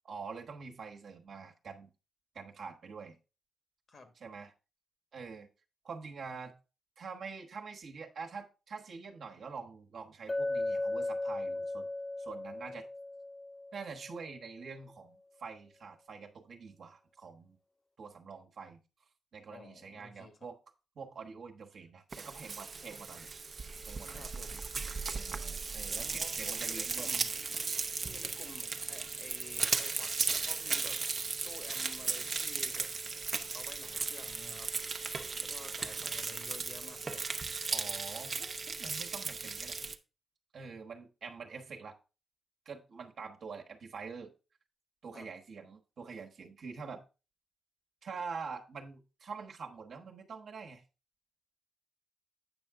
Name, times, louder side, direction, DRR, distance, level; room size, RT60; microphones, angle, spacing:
voice 1, 0.0-1.9 2.3-3.2 4.2-4.5 5.1-5.5 5.8-6.5 7.0-11.9 12.2-12.9 13.7-17.6 18.0-18.8 19.3-20.6 20.9-23.3 23.9-24.3 25.1-27.1 37.7-39.8 40.5-42.0 42.6-44.3 45.0-47.0 48.0-50.8, right 5 dB, 65° right, 3 dB, 1.2 m, -45 dB
Chink clink, 10.3-14.3, left 2 dB, 25° left, 0.4 m, -36 dB
voice 2, 19.5-20.3 24.1-24.6 25.9-27.4 28.0-31.0 31.4-32.9 33.5-35.1 35.4-37.3 45.1-45.3, left 3 dB, 55° left, 7 dB, 1.5 m, -52 dB
Frying (food), 22.1-40.0, right 4 dB, 40° right, 0.7 m, -36 dB
8.7 x 5.7 x 3.6 m, 0.31 s
cardioid pair, 105°, 0 cm